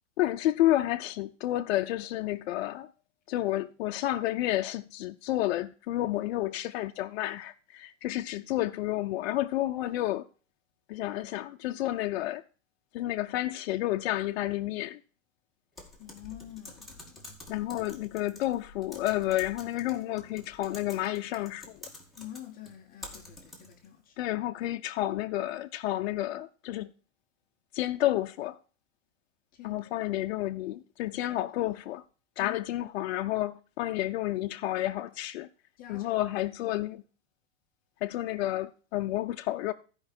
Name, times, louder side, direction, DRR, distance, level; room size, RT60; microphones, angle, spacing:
voice 1, 0.2-2.9 3.3-10.3 10.9-12.4 12.9-15.0 17.5-21.9 24.2-26.9 27.7-28.6 29.6-32.0 32.4-35.5 35.9-37.0 38.0-39.7, left 15 dB, 55° left, 0.6 m, -30 dB
Typing, 15.8-23.9, left 2 dB, ahead, 2.1 m, -49 dB
voice 2, 16.0-17.4 22.2-24.2 29.5-29.8 31.3-31.8 32.4-32.9 35.8-36.1 36.6-36.8, left 12 dB, 25° left, 0.8 m, -47 dB
15.0 x 5.3 x 4.3 m
supercardioid pair, 160°, 38 cm